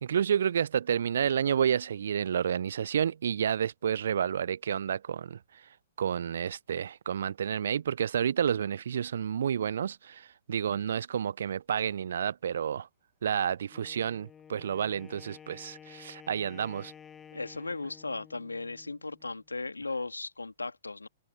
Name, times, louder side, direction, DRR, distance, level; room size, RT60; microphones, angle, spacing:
voice 1, 0.0-5.4 6.0-12.9 13.2-16.9, right 8 dB, 65° right, 0.5 m, -30 dB
Wind instrument woodwind instrument, 13.7-19.4, left 8 dB, 15° left, 6.6 m, -52 dB
voice 2, 17.3-21.1, left 3 dB, 85° left, 2.4 m, -37 dB
figure-of-eight pair, 115°, 0 cm